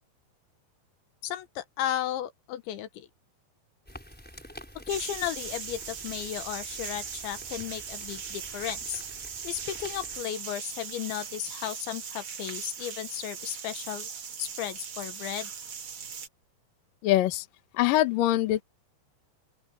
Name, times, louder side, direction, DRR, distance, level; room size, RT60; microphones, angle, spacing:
voice 1, 1.2-3.1 4.9-9.0 9.4-14.1 14.4-15.5, left 12 dB, 80° left, 3.6 m, -34 dB
sound 1, 3.9-10.2, equal, ahead, 4.7 m, -49 dB
sound 2, 4.9-16.3, right 6 dB, 60° right, 1.3 m, -39 dB
voice 2, 17.0-17.5 17.7-18.6, left 14 dB, 60° left, 2.6 m, -23 dB
open air
omnidirectional pair, 5.3 m